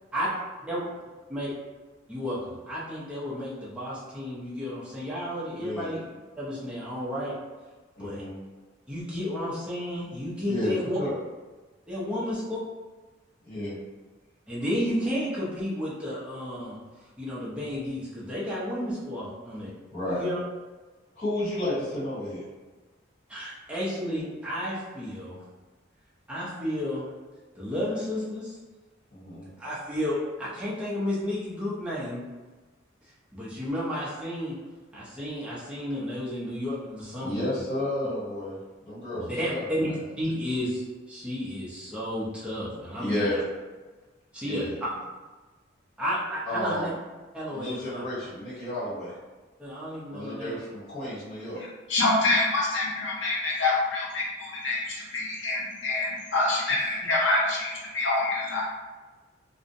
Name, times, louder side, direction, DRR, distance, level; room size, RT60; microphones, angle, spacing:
voice 1, 2.1-6.1 6.4-7.3 8.0-8.2 8.9-11.0 11.9-12.6 14.5-16.8 17.2-19.7 20.1-20.4 23.3-25.4 26.3-27.1 27.6-28.6 29.6-32.2 33.3-34.6 34.9-37.4 39.1-43.4 44.3-44.9 46.0-46.9 47.3-48.0 49.6-50.6, equal, 5° right, -8 dB, 0.5 m, -32 dB
voice 2, 5.6-5.9 8.0-8.3 10.4-10.7 11.0-11.1 13.4-13.7 19.9-20.2 21.2-22.4 29.1-29.5 37.2-38.6 38.8-40.0 43.0-43.4 44.4-44.7 46.4-46.9 47.5-49.1 50.1-51.6, left 1 dB, 35° left, -15 dB, 1.1 m, -32 dB
voice 3, 51.5-58.6, left 2 dB, 70° left, -5 dB, 0.7 m, -26 dB
2.5 x 2.0 x 2.5 m, 1.2 s
head